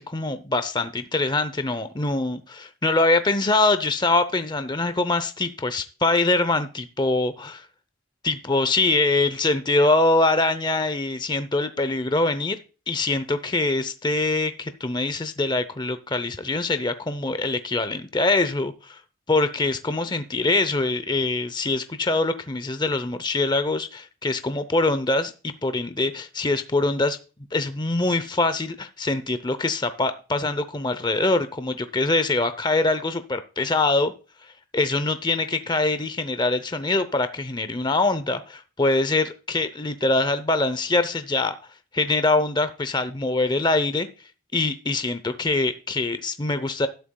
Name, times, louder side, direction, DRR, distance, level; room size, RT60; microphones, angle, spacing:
voice 1, 0.0-7.6 8.2-12.6 12.9-19.0 19.3-27.2 27.5-34.1 34.7-41.5 41.9-44.1 44.5-46.9, left 2 dB, 20° left, 11 dB, 0.6 m, -23 dB
12.5 x 10.5 x 2.3 m, 0.33 s
head